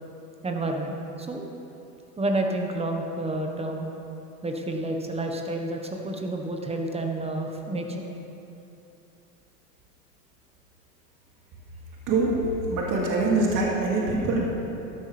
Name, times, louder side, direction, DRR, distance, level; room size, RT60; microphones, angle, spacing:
voice 1, 0.4-1.5 2.2-3.9 4.4-8.1, right 1 dB, 15° right, 2 dB, 1.4 m, -29 dB
voice 2, 12.1-12.4 12.7-14.5, right 3 dB, 40° right, -3 dB, 2.6 m, -24 dB
13.0 x 12.5 x 3.5 m, 2.9 s
hypercardioid pair, 95°, 47 cm